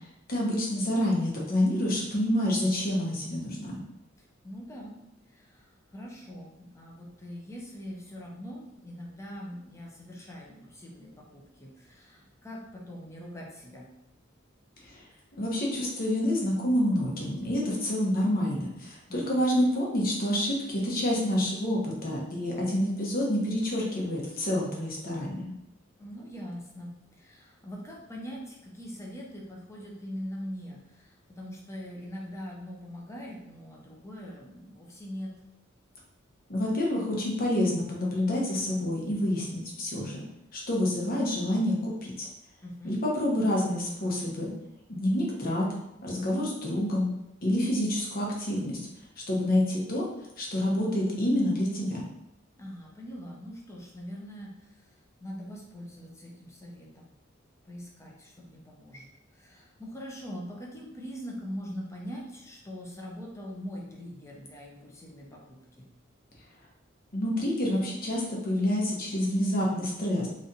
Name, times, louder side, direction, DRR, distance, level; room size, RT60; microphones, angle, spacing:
voice 1, 0.3-3.8 14.8-14.9 15.4-25.5 36.5-40.2 40.5-42.3 42.8-44.5 44.9-45.6 46.0-47.1 47.4-48.8 49.3-50.1 50.4-52.1 67.1-70.3, left 1 dB, 45° left, -3 dB, 1.0 m, -28 dB
voice 2, 4.4-5.0 5.3-13.9 19.1-19.4 26.0-35.4 42.6-43.0 52.6-54.9 55.2-57.1 57.7-59.1 59.3-65.9, equal, 15° left, -2 dB, 0.8 m, -42 dB
3.2 x 2.6 x 4.0 m, 0.87 s
head